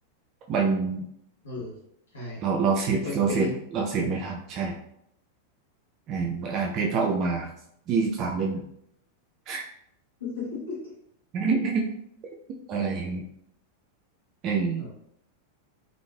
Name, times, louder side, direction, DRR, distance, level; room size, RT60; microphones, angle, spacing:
voice 1, 0.5-1.0 2.4-4.8 6.1-7.5 7.9-8.6 9.5-9.6 11.3-11.8 12.7-13.2 14.4-14.8, right 5 dB, 35° right, 0 dB, 0.3 m, -26 dB
voice 2, 1.4-1.8 2.1-2.4 2.9-3.6 10.2-11.0 14.8-14.9, left 4 dB, 70° left, -6 dB, 1.2 m, -35 dB
3.0 x 2.4 x 2.2 m, 0.72 s
figure-of-eight pair, 90°, 0 cm